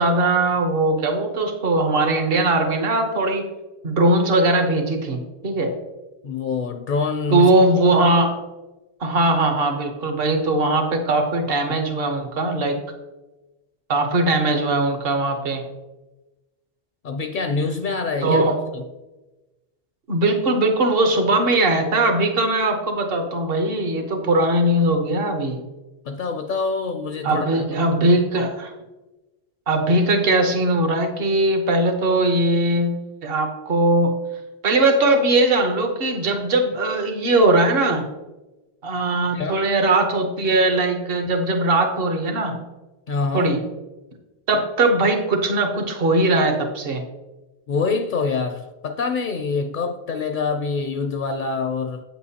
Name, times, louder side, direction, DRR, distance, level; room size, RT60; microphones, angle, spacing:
voice 1, 0.0-3.5 3.8-5.2 5.4-5.7 7.3-8.4 9.0-12.8 13.9-15.6 18.2-18.6 20.1-25.6 27.2-28.7 29.7-34.1 34.6-38.0 38.8-42.6 43.3-43.6 44.5-47.0, right 2 dB, 65° right, 5 dB, 1.2 m, -20 dB
voice 2, 6.2-7.5 11.7-11.8 17.0-18.8 26.1-27.5 39.3-39.6 43.1-43.5 47.7-52.0, left 4 dB, 60° left, 7 dB, 0.6 m, -25 dB
8.2 x 7.5 x 2.8 m, 1.1 s
omnidirectional pair, 1.1 m